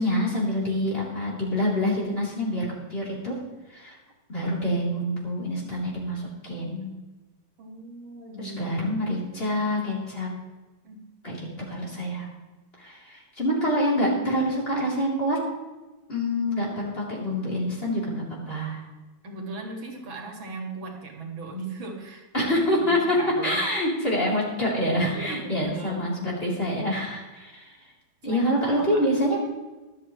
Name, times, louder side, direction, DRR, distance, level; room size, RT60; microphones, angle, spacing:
voice 1, 0.0-3.4 3.7-4.0 4.3-6.9 8.4-10.3 11.2-11.4 11.7-12.3 12.8-15.4 16.1-18.8 22.3-27.7 28.2-29.4, equal, 30° left, -4 dB, 3.9 m, -26 dB
voice 2, 7.6-8.6 10.8-11.0 19.2-22.3 22.8-23.7 25.1-26.1 28.2-29.0, right 3 dB, 90° right, 1 dB, 3.0 m, -38 dB
23.5 x 8.6 x 3.2 m, 1.2 s
omnidirectional pair, 2.1 m